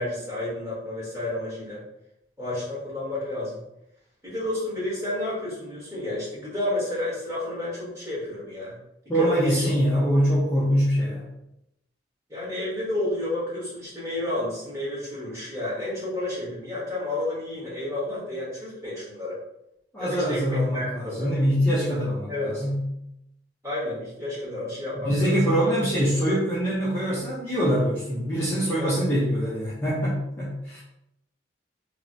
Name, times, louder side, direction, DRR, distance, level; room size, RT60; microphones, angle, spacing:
voice 1, 0.0-1.8 2.4-3.6 4.2-8.8 9.1-9.5 12.3-19.4 20.0-21.4 22.3-22.6 23.6-25.5 28.8-29.1, left 1 dB, 15° right, -9 dB, 1.3 m, -31 dB
voice 2, 9.1-11.3 19.9-22.8 25.0-30.8, equal, 10° left, -9 dB, 0.5 m, -24 dB
3.1 x 2.0 x 2.6 m, 0.82 s
head